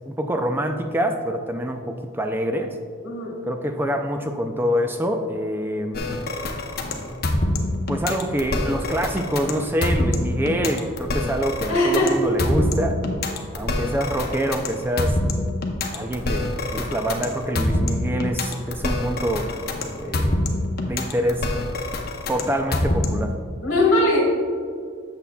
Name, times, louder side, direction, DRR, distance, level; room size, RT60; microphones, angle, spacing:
voice 1, 0.1-2.8 3.5-6.0 7.9-13.0 13.5-15.2 15.9-19.6 20.0-20.6 20.9-21.5 22.3-23.3, equal, 10° right, 5 dB, 0.3 m, -26 dB
sound 1, 5.9-23.3, left 1 dB, 45° left, 0.7 m, -25 dB
voice 2, 11.7-12.2 23.6-24.2, left 1 dB, 65° left, -3 dB, 1.4 m, -19 dB
8.2 x 6.8 x 2.3 m, 2.2 s
head